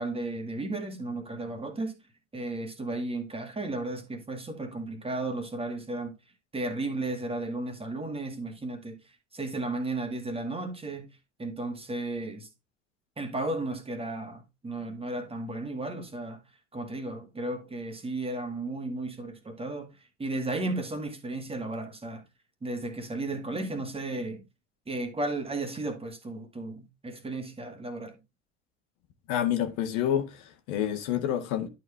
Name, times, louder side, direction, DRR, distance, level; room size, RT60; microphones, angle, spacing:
voice 1, 0.0-2.0 2.3-6.1 6.5-9.0 9.3-11.1 11.4-12.5 13.2-16.4 16.7-19.9 20.2-22.2 22.6-24.4 24.9-28.2, right 2 dB, 15° right, 2.0 m, -34 dB
voice 2, 29.3-31.7, left 10 dB, 55° left, 1.7 m, -28 dB
11.5 x 4.8 x 3.4 m
figure-of-eight pair, 70°, 37 cm